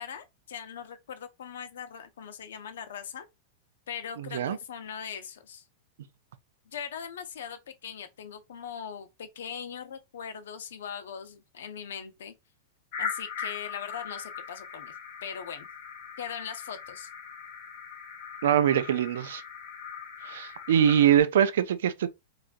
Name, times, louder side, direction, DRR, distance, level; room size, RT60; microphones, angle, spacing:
voice 1, 0.0-3.2 3.9-5.6 6.7-12.3 13.0-14.9 15.2-15.7 16.2-17.1, left 8 dB, 85° left, 0.7 m, -40 dB
voice 2, 4.2-4.6 18.4-19.4 20.3-22.1, right 9 dB, 75° right, 0.5 m, -23 dB
sound 1, 12.9-21.2, left 6 dB, 40° left, 1.9 m, -40 dB
4.7 x 2.5 x 2.6 m
supercardioid pair, 165°, 0 cm